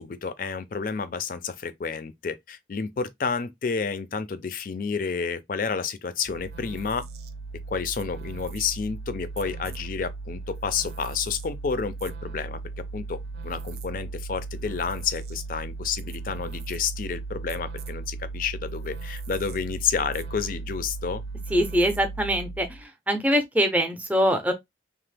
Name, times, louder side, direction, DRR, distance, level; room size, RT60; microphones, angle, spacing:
voice 1, 0.0-7.0 7.7-12.6 12.9-21.2, left 5 dB, 50° left, 0.4 m, -30 dB
sound 1, 6.3-22.8, right 3 dB, 55° right, 0.4 m, -37 dB
voice 2, 21.5-22.7 23.1-24.5, equal, 10° right, 0.6 m, -23 dB
3.0 x 2.0 x 3.2 m
head